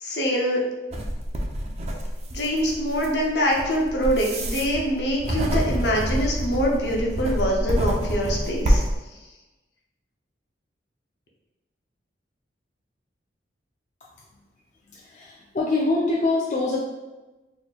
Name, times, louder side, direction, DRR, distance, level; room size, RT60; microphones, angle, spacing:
voice 1, 0.0-0.6 2.3-8.8, equal, 70° left, -1 dB, 0.7 m, -24 dB
sound 1, 0.9-9.0, equal, 35° right, 0.5 m, -26 dB
voice 2, 14.9-16.8, left 2 dB, 40° left, -3 dB, 0.4 m, -24 dB
4.1 x 3.0 x 2.4 m, 1.1 s
head